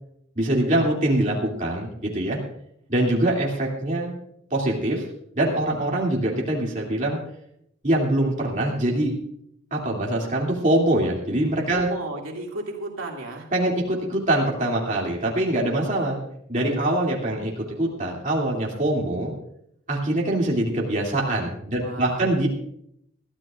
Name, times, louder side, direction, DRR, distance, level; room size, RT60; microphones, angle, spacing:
voice 1, 0.4-2.4 2.9-4.1 4.5-5.0 5.3-7.2 7.8-9.1 9.7-11.9 13.5-16.2 16.5-19.3 19.9-22.5, right 1 dB, 35° right, -2 dB, 2.8 m, -23 dB
voice 2, 11.7-13.5 21.7-22.3, right 2 dB, 90° right, 0 dB, 2.4 m, -34 dB
22.5 x 13.5 x 2.5 m, 0.73 s
head